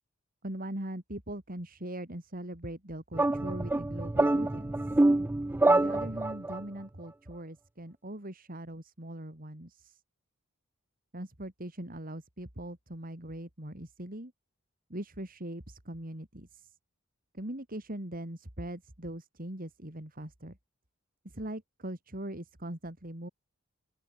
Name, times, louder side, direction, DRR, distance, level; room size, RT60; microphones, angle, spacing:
voice 1, 0.4-4.7 5.6-10.0 11.1-14.3 14.9-16.7 17.3-20.6 21.2-23.3, right 1 dB, 45° right, 3.9 m, -41 dB
sound 1, 3.1-6.6, right 2 dB, 10° right, 0.3 m, -26 dB
open air
head